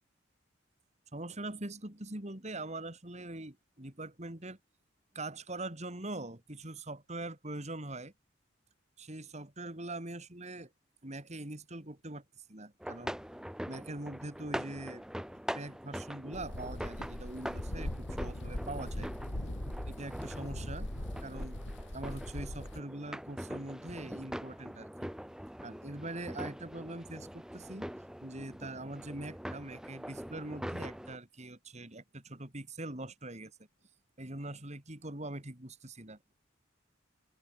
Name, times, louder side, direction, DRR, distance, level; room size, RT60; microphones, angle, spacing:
voice 1, 1.1-4.6 5.1-8.1 9.0-10.7 11.0-13.2 13.7-15.0 15.5-19.1 19.9-20.9 21.2-21.6 21.9-25.1 25.6-27.9 28.2-33.5 34.2-36.2, right 2 dB, 35° right, 3.2 m, -43 dB
sound 1, 12.8-31.2, equal, 5° right, 1.3 m, -43 dB
sound 2, 16.3-22.8, left 1 dB, 65° left, 2.7 m, -40 dB
open air
head